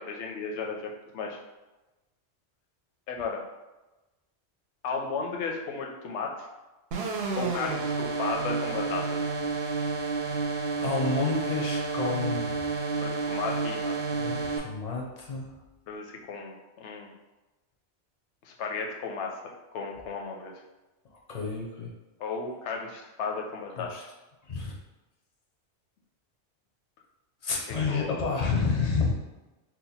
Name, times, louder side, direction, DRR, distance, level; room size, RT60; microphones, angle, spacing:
voice 1, 0.0-1.4 3.1-3.4 4.8-6.5 7.4-9.3 13.0-13.9 15.9-17.1 18.4-19.3 19.7-20.5 22.2-24.1 27.9-28.1, left 4 dB, 80° left, 1 dB, 0.9 m, -34 dB
sound 1, 6.9-14.6, right 4 dB, 70° right, 0.8 m, -30 dB
voice 2, 10.8-12.6 14.1-15.5 21.1-21.9 23.8-24.0 24.4-24.7 27.4-29.1, left 4 dB, 45° left, -1 dB, 0.5 m, -30 dB
2.8 x 2.2 x 4.1 m, 1.1 s
omnidirectional pair, 1.2 m